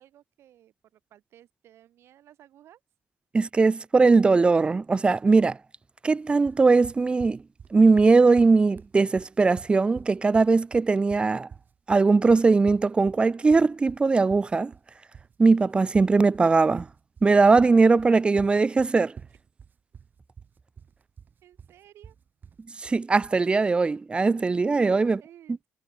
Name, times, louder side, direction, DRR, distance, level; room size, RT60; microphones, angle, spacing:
voice 1, 0.0-2.8 21.4-22.2 24.8-25.6, right 12 dB, 70° right, 7.2 m, -54 dB
voice 2, 3.3-5.6 6.0-7.4 7.7-11.5 11.9-14.7 15.4-16.9 17.2-19.1 22.8-25.2, right 4 dB, 25° right, 0.8 m, -20 dB
sound 1, 6.5-23.4, right 7 dB, 45° right, 2.8 m, -47 dB
cardioid pair, 105°, 5 cm